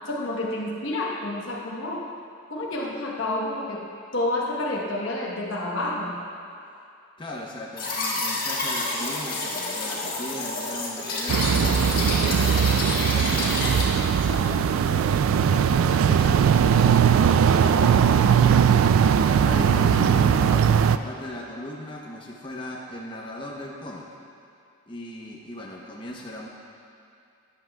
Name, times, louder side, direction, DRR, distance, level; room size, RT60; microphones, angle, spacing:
voice 1, 0.0-2.1 2.5-6.2, left 1 dB, 75° left, -2 dB, 1.0 m, -29 dB
voice 2, 7.2-18.9 19.3-24.1 24.9-26.5, left 1 dB, 25° left, -3 dB, 0.8 m, -38 dB
sound 1, 7.8-13.8, left 2 dB, 45° left, 1.6 m, -29 dB
sound 2, 11.3-21.0, right 7 dB, 85° right, 0.3 m, -19 dB
13.5 x 9.8 x 2.3 m, 2.5 s
head